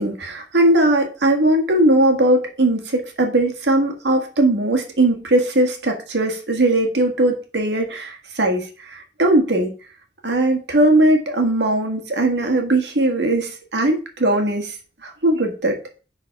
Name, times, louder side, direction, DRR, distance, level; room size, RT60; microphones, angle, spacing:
voice 1, 0.0-9.7 10.2-14.8 15.0-15.8, right 1 dB, 80° right, 3 dB, 1.7 m, -19 dB
9.8 x 4.1 x 4.6 m, 0.36 s
head